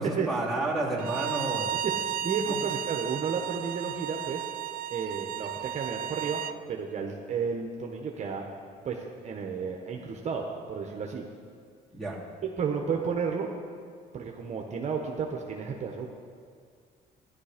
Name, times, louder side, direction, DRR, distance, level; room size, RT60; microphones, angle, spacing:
voice 1, 0.0-1.7 2.5-2.6 11.9-12.2, right 2 dB, ahead, -4 dB, 3.3 m, -30 dB
Bowed string instrument, 1.0-6.6, right 10 dB, 60° right, 0.5 m, -34 dB
voice 2, 1.8-4.5 4.9-8.4 8.8-11.2 12.4-13.5 14.1-16.1, right 6 dB, 45° right, 1 dB, 1.2 m, -32 dB
14.5 x 11.0 x 5.2 m, 2.1 s
cardioid pair, 110°, 17 cm